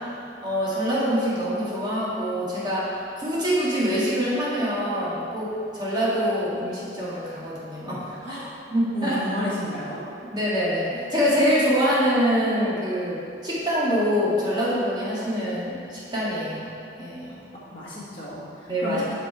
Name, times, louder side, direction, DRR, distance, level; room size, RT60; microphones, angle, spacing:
voice 1, 0.4-8.4 8.7-9.2 10.2-17.3 18.7-19.0, equal, 25° right, -8 dB, 1.6 m, -25 dB
voice 2, 8.2-8.5 8.9-10.0 17.7-19.1, left 1 dB, 30° left, -9 dB, 1.4 m, -32 dB
6.1 x 5.4 x 4.7 m, 2.5 s
head